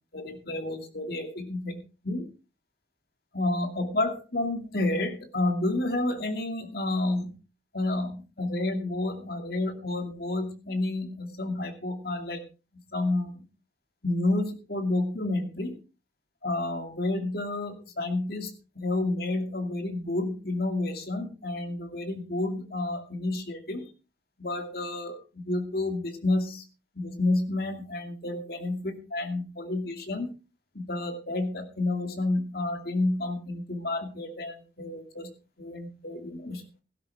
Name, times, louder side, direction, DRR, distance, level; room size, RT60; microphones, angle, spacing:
voice 1, 0.1-2.3 3.3-7.4 7.7-12.4 12.9-13.5 14.0-15.8 16.4-23.9 24.4-26.6 26.9-30.3 30.7-35.3 35.6-36.6, left 2 dB, 55° left, 6 dB, 2.5 m, -30 dB
16.0 x 12.5 x 3.5 m, 0.32 s
head